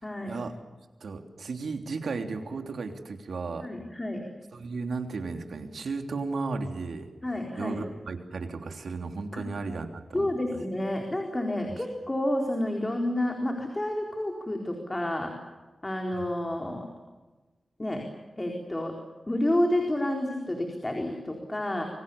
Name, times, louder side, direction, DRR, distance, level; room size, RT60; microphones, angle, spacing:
voice 1, 0.0-0.4 3.6-4.2 7.2-7.8 9.3-9.4 10.1-15.3 15.8-16.9 17.8-18.0 18.4-18.9 19.3-21.8, left 1 dB, 20° left, 2 dB, 4.2 m, -29 dB
voice 2, 1.0-3.7 4.5-7.1 7.6-10.6 16.1-16.2, right 4 dB, 85° right, 5 dB, 3.2 m, -34 dB
27.0 x 24.5 x 7.1 m, 1.2 s
wide cardioid pair, 110°, 0 cm